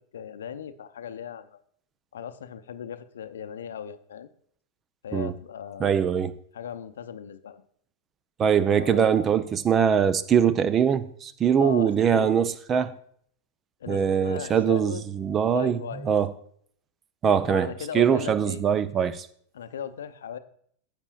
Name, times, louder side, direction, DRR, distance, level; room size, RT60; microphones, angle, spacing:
voice 1, 0.0-1.6 2.1-4.3 5.0-6.0 6.5-7.6 8.7-9.3 11.6-12.4 13.8-15.0 15.5-16.1 17.5-18.6 19.5-20.4, left 8 dB, 65° left, 0.7 m, -37 dB
voice 2, 5.8-6.3 8.4-13.0 13.9-16.3 17.2-19.3, right 8 dB, 25° right, 0.5 m, -22 dB
15.0 x 8.8 x 2.4 m
figure-of-eight pair, 90°, 0 cm